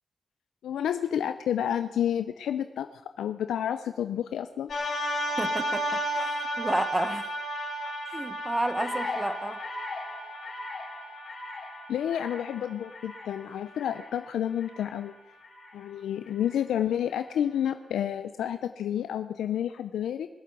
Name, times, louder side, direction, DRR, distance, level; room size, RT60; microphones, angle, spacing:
voice 1, 0.6-4.7 11.9-15.1 15.7-20.3, left 10 dB, 85° left, 9 dB, 0.5 m, -30 dB
sound 1, 4.7-14.9 15.5-15.6, equal, 65° left, 4.1 m, -33 dB
voice 2, 5.4-6.3 6.6-7.3 8.1-9.6, right 1 dB, 20° right, 11 dB, 1.3 m, -31 dB
20.5 x 7.6 x 8.2 m, 1.1 s
supercardioid pair, 55°, 0 cm